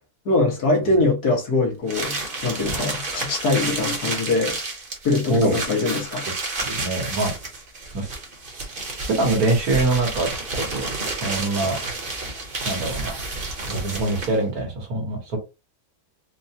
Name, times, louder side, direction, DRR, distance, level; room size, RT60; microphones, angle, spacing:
voice 1, 0.3-4.6 5.0-6.3, left 2 dB, 80° left, 1.9 m, -22 dB
sound 1, 1.9-14.5, right 3 dB, 40° right, 1.1 m, -30 dB
voice 2, 6.3-7.3 7.9-8.2 9.1-11.8 12.6-13.2 13.7-15.4, right 2 dB, 70° right, 1.7 m, -24 dB
4.4 x 2.3 x 2.8 m
omnidirectional pair, 1.6 m